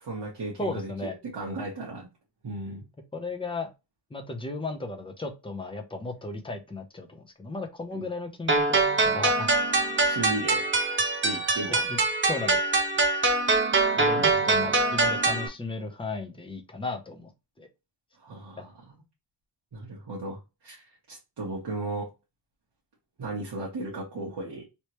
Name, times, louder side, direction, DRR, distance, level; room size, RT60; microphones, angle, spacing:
voice 1, 0.1-0.9 1.3-2.1 2.4-2.8 7.9-8.0 10.0-10.6 11.2-12.0 14.2-14.3 18.2-18.7 19.7-20.8 21.1-22.1 23.2-24.6, right 2 dB, 60° right, 1.2 m, -35 dB
voice 2, 0.6-1.2 3.1-3.7 4.1-9.5 11.7-12.0 12.3-12.6 14.0-17.3 17.6-17.7 18.6-18.7, left 3 dB, 10° left, 0.6 m, -35 dB
sound 1, 8.5-15.5, right 3 dB, 25° right, 0.6 m, -24 dB
3.3 x 2.9 x 2.9 m
wide cardioid pair, 145°, 45 cm